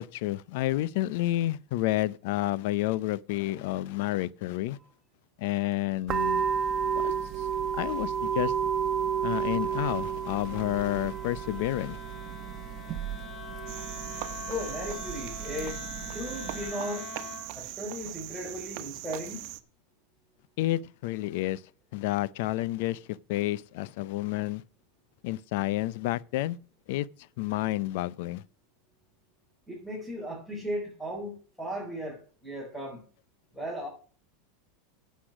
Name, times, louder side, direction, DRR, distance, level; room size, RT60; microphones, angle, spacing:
voice 1, 0.0-4.8 5.4-6.5 7.0-7.5 7.7-8.5 9.2-12.0 20.6-21.6 21.9-24.6 25.2-26.6 26.9-27.1 27.4-28.4, left 16 dB, 65° left, 0.6 m, -30 dB
Wind instrument woodwind instrument, 6.1-17.6, left 6 dB, 35° left, 2.8 m, -46 dB
sound 1, 6.1-16.7, right 7 dB, 30° right, 1.2 m, -32 dB
Cricket, 13.7-19.6, right 16 dB, 55° right, 1.1 m, -40 dB
voice 2, 14.5-15.8 16.1-17.1 17.5-19.4 29.7-33.0 33.5-33.9, equal, 5° left, 5.2 m, -36 dB
10.0 x 8.3 x 6.1 m
supercardioid pair, 140°, 0 cm